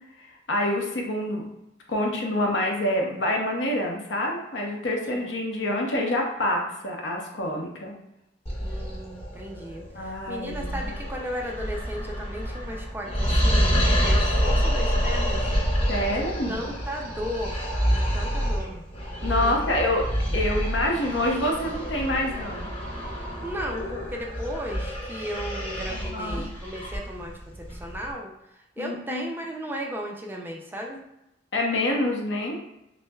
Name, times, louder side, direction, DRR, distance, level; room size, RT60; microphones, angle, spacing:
voice 1, 0.2-1.4 1.9-7.9 9.9-10.9 15.9-16.6 19.2-20.0 20.3-22.7 25.9-26.4 28.8-29.2 31.5-32.6, left 1 dB, 85° left, 0 dB, 0.8 m, -27 dB
voice 2, 5.0-5.3 8.6-15.5 16.1-18.8 19.2-19.8 23.4-31.0, equal, 10° right, 0 dB, 0.4 m, -36 dB
sound 1, 8.5-28.1, equal, 35° left, 0.9 m, -27 dB
6.1 x 2.1 x 2.3 m, 0.87 s
head